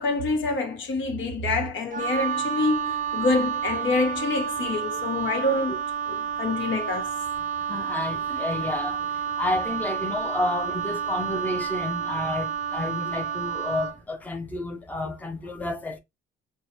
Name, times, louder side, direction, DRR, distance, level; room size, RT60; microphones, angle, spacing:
voice 1, 0.0-5.7 6.1-7.1 8.5-8.6 9.3-9.4, left 3 dB, 70° left, 1.1 m, -26 dB
Wind instrument woodwind instrument, 1.9-14.0, right 7 dB, 40° right, 0.5 m, -30 dB
voice 2, 7.7-9.0 9.4-16.0, left 2 dB, 10° left, 0.5 m, -30 dB
4.5 x 2.0 x 3.1 m
cardioid pair, 90°, 20 cm